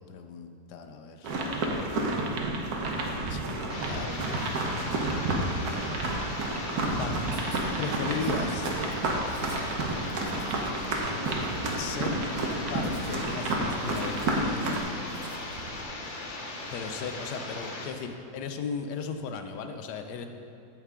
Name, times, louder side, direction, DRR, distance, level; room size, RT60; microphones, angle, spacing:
voice 1, 0.0-1.4 3.0-4.5 5.7-5.8 6.9-7.2 7.8-8.7 11.8-12.2 12.7-14.9 16.7-20.3, left 5 dB, 75° left, 7 dB, 1.2 m, -36 dB
sound 1, 1.2-14.8, right 2 dB, 65° right, 1.4 m, -30 dB
sound 2, 3.7-17.9, left 2 dB, 45° left, 0.7 m, -38 dB
Writing, 6.9-15.8, right 2 dB, 90° right, 1.5 m, -48 dB
8.8 x 8.3 x 3.7 m, 2.5 s
omnidirectional pair, 1.8 m